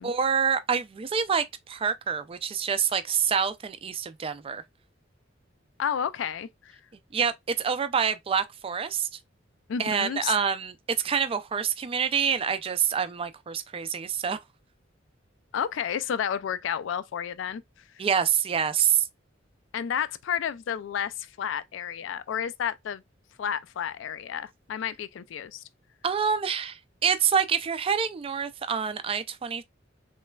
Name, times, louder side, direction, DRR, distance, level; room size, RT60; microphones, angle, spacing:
voice 1, 0.0-4.6 7.1-9.1 9.8-10.7 11.0-14.4 18.0-19.0 26.0-29.6, right 7 dB, 30° right, 0.3 m, -26 dB
voice 2, 5.8-6.8 9.7-10.3 15.5-17.6 19.7-23.0 23.4-25.6, left 8 dB, 70° left, 0.3 m, -31 dB
3.3 x 3.1 x 2.2 m
head